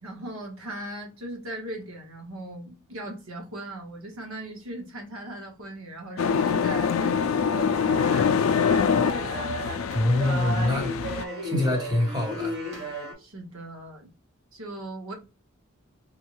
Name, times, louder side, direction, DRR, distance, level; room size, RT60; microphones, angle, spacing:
voice 1, 0.0-9.1 13.2-14.1 14.5-15.1, right 1 dB, 75° right, 1.2 m, -39 dB
sound 1, 6.2-11.2, left 6 dB, 70° left, 0.3 m, -24 dB
sound 2, 7.5-13.1, right 1 dB, 55° right, 1.3 m, -34 dB
voice 2, 9.9-10.9 11.4-12.6, left 1 dB, 20° right, 1.1 m, -24 dB
3.5 x 2.3 x 3.0 m
head